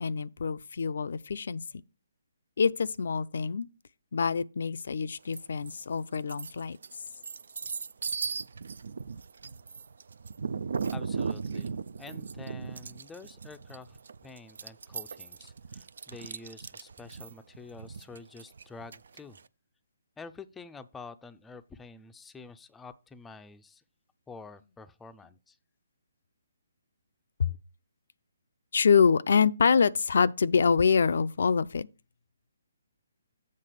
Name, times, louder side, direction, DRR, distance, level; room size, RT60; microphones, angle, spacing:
voice 1, 0.0-1.6 2.6-3.7 4.1-6.8 27.4-27.5 28.7-31.9, left 6 dB, 65° left, 0.4 m, -25 dB
sound 1, 5.3-5.7 6.1-19.4, right 5 dB, 70° right, 0.4 m, -37 dB
voice 2, 10.9-14.0 14.2-19.4 20.2-23.8 24.3-25.6, left 4 dB, 10° left, 0.4 m, -48 dB
7.6 x 3.9 x 6.6 m
hypercardioid pair, 155°, 0 cm